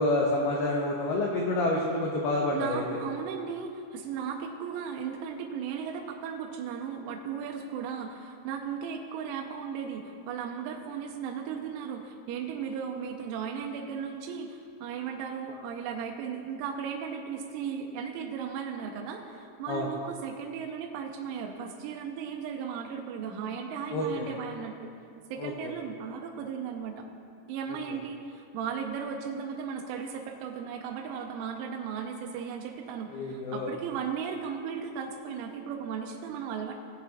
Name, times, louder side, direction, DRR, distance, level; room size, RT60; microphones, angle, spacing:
voice 1, 0.0-2.8 19.7-19.9 23.9-24.3 25.4-25.7 33.1-33.7, left 2 dB, 80° left, -2 dB, 2.3 m, -28 dB
voice 2, 2.5-24.9 25.3-27.0 27.5-36.7, right 7 dB, 85° right, 2 dB, 3.1 m, -36 dB
19.0 x 7.1 x 2.8 m, 2.4 s
omnidirectional pair, 5.6 m